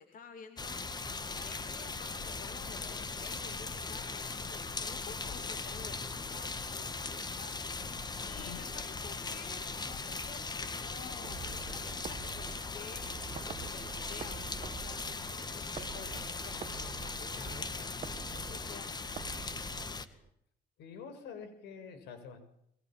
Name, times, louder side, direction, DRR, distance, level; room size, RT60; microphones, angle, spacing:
voice 1, 0.0-7.6 8.2-18.9, left 6 dB, 55° left, 7 dB, 2.9 m, -52 dB
sound 1, 0.6-20.1, left 4 dB, 25° left, 1.9 m, -39 dB
voice 2, 8.4-8.7 20.0-20.3 20.8-22.4, left 6 dB, 85° left, 9 dB, 6.3 m, -47 dB
sound 2, 11.2-20.3, right 7 dB, 40° right, 1.5 m, -47 dB
25.0 x 23.5 x 7.5 m, 0.75 s
cardioid pair, 110°, 17 cm